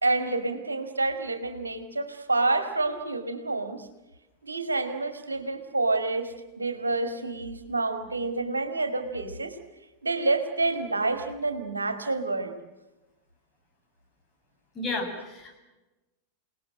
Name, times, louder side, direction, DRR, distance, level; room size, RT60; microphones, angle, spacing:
voice 1, 0.0-3.9 4.4-9.5 10.0-12.5, right 2 dB, 80° right, 9 dB, 2.4 m, -28 dB
voice 2, 14.7-15.6, left 2 dB, 20° left, 1 dB, 7.9 m, -32 dB
29.5 x 19.5 x 7.7 m, 1.1 s
figure-of-eight pair, 90°, 0 cm